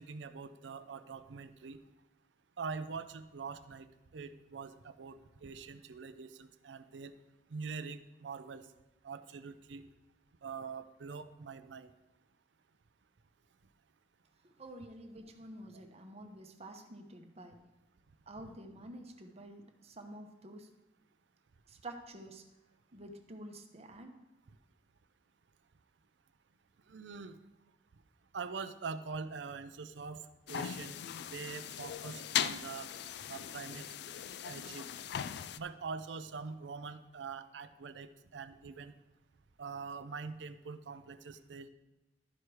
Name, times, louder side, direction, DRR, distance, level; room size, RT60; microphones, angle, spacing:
voice 1, 0.0-1.8 2.6-3.9 4.1-7.1 7.5-8.7 9.0-9.9 10.4-11.9 15.7-15.9 26.9-27.4 28.3-32.9 33.3-33.9 34.4-34.9 35.5-38.9 39.6-41.7, right 5 dB, 80° right, 11 dB, 0.5 m, -44 dB
voice 2, 14.6-17.6 18.3-20.7 21.7-22.4 22.9-24.1, right 1 dB, 35° right, 5 dB, 0.9 m, -49 dB
sound 1, 30.5-35.6, left 9 dB, 65° left, 0.3 m, -39 dB
12.5 x 4.7 x 4.8 m, 1.0 s
head